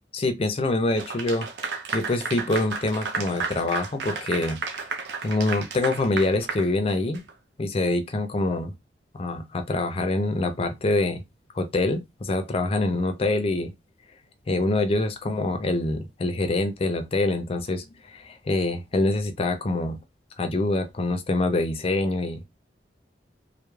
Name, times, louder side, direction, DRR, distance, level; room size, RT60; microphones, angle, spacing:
voice 1, 0.1-1.5 1.9-4.6 5.2-7.2 7.6-8.7 9.1-11.2 11.5-13.7 14.5-20.0 20.4-22.4, left 2 dB, 35° left, 0.4 m, -25 dB
Clapping / Applause, 1.0-7.3, right 5 dB, 70° right, 0.5 m, -33 dB
2.2 x 2.0 x 3.0 m
head